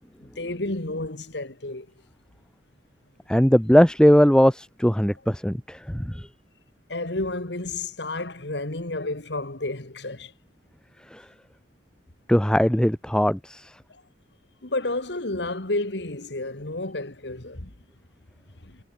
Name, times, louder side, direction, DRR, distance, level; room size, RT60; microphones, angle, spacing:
voice 1, 0.2-1.9 6.9-10.3 14.6-17.7 18.6-18.8, left 2 dB, 65° left, 2.3 m, -31 dB
voice 2, 3.3-6.3 11.1-11.2 12.3-13.7, equal, 5° left, 0.7 m, -19 dB
head